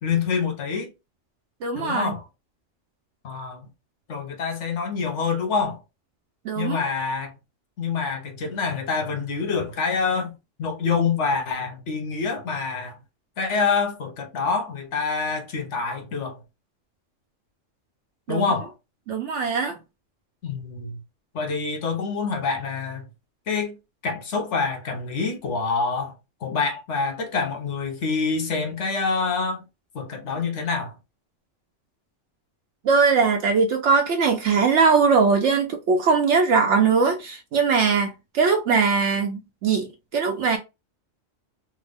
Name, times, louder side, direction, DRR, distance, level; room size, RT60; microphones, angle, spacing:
voice 1, 0.0-0.9 1.7-2.2 3.2-3.6 4.1-5.8 6.5-7.3 7.8-10.3 10.6-13.0 13.4-16.4 18.3-18.7 20.4-21.0 21.3-23.1 23.5-23.8 24.0-26.1 26.4-29.6 29.9-30.9, left 5 dB, 70° left, 1.2 m, -26 dB
voice 2, 1.6-2.1 6.4-6.8 18.3-18.5 19.1-19.8 32.8-40.6, right 5 dB, 70° right, 0.9 m, -21 dB
3.4 x 2.1 x 3.5 m
omnidirectional pair, 1.3 m